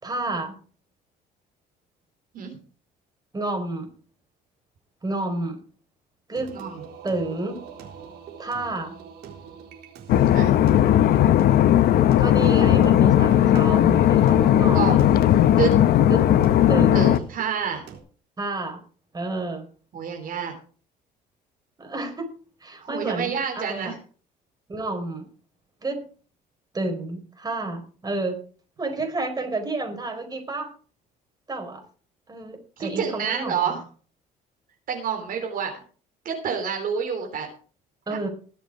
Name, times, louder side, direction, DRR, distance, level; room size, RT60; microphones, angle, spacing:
voice 1, 0.0-0.5 3.3-3.9 5.0-5.6 6.3-6.6 7.0-7.6 8.4-9.0 12.2-15.1 16.1-16.3 16.7-17.2 18.4-18.8 19.1-19.7 21.8-22.3 22.6-23.9 24.7-25.3 25.8-26.0 26.7-28.4 28.8-30.7 31.5-31.8 32.3-33.8 38.1-38.3, right 2 dB, 20° right, 4 dB, 4.5 m, -30 dB
Singing, 6.4-18.0, right 7 dB, 80° right, 3.9 m, -44 dB
sound 1, 10.1-17.2, left 11 dB, 70° left, 0.9 m, -17 dB
voice 2, 16.9-17.8 19.9-20.5 22.8-24.0 32.8-33.8 34.9-35.7 36.2-37.5, right 6 dB, 55° right, 3 dB, 3.2 m, -28 dB
20.5 x 7.2 x 5.0 m, 0.41 s
cardioid pair, 110°, 17 cm